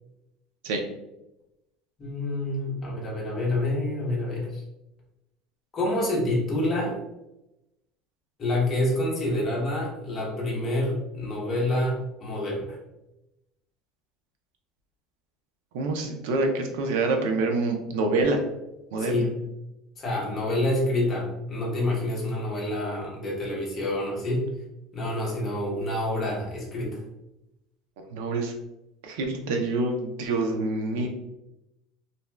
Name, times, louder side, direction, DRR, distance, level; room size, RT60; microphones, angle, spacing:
voice 1, 2.0-4.6 5.7-7.0 8.4-12.8 19.0-19.3 20.0-24.5 24.9-27.0, left 1 dB, 20° left, -4 dB, 0.8 m, -27 dB
voice 2, 15.7-18.4 18.9-19.3 28.1-28.5 29.0-31.1, right 3 dB, 85° right, 3 dB, 0.6 m, -26 dB
2.6 x 2.2 x 3.2 m, 0.92 s
cardioid pair, 170°, 0 cm